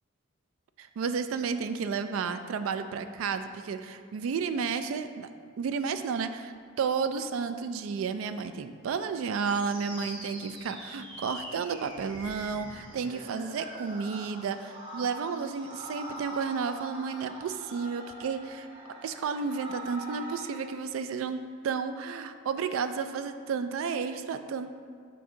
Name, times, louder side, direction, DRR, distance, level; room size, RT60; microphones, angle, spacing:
voice 1, 0.8-5.3 5.6-18.7 19.0-24.7, right 5 dB, 90° right, 10 dB, 0.3 m, -32 dB
sound 1, 9.4-20.7, right 1 dB, 25° right, 1.2 m, -43 dB
7.5 x 2.7 x 5.0 m, 2.1 s
head